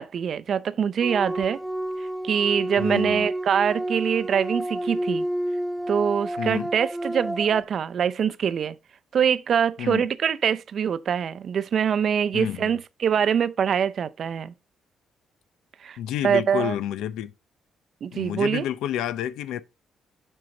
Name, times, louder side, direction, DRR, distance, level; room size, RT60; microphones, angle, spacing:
voice 1, 0.0-1.6 2.2-5.3 5.9-8.8 9.1-14.5 15.8-16.0 16.2-16.8 18.0-18.6, right 7 dB, 55° right, 0.5 m, -24 dB
sound 1, 1.0-7.6, right 1 dB, 5° right, 0.5 m, -30 dB
voice 2, 2.8-3.3 6.4-6.7 9.8-10.1 12.3-12.8 16.0-17.3 18.1-19.6, left 11 dB, 90° left, 0.5 m, -29 dB
7.7 x 5.5 x 3.7 m
cardioid pair, 90°, 0 cm